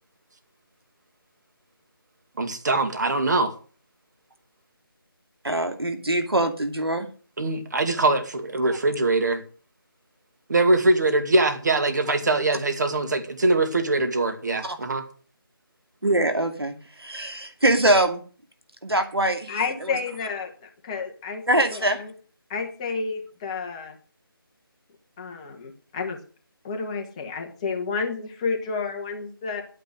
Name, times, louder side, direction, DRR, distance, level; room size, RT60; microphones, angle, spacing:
voice 1, 2.4-3.5 7.4-9.4 10.5-15.1, right 2 dB, 50° right, 7 dB, 2.3 m, -22 dB
voice 2, 5.4-7.1 14.6-14.8 16.0-18.2 18.8-20.0 21.5-22.0, right 1 dB, 85° right, 7 dB, 2.5 m, -23 dB
voice 3, 19.5-22.1 22.5-23.9 25.2-26.2 26.6-29.6, left 4 dB, 15° left, 3 dB, 1.2 m, -31 dB
11.5 x 9.1 x 6.5 m, 0.39 s
figure-of-eight pair, 160°, 13 cm